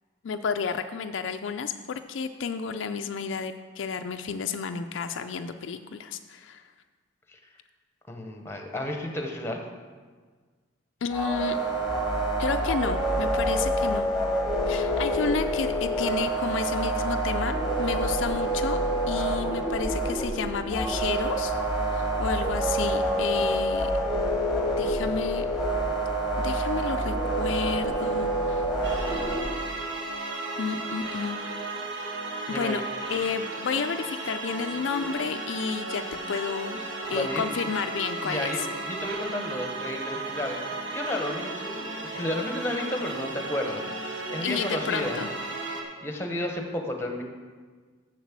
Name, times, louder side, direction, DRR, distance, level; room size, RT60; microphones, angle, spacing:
voice 1, 0.2-6.6 11.0-11.6 12.4-14.1 14.7-18.8 19.1-21.5 21.9-23.9 24.8-25.5 26.4-28.6 30.6-31.4 32.5-32.8 33.1-36.8 37.1-38.7 44.4-45.3, left 6 dB, 70° left, 7 dB, 0.4 m, -31 dB
voice 2, 8.1-9.6 32.5-32.8 37.1-37.4 38.2-38.6 38.9-40.6 40.9-41.8 42.1-43.9 44.3-45.2 46.0-47.2, left 1 dB, 10° left, 3 dB, 1.0 m, -32 dB
sound 1, 11.1-29.4, right 1 dB, 5° right, 1.5 m, -27 dB
sound 2, 28.8-45.8, right 2 dB, 65° right, 1.3 m, -35 dB
7.1 x 6.7 x 7.4 m, 1.5 s
head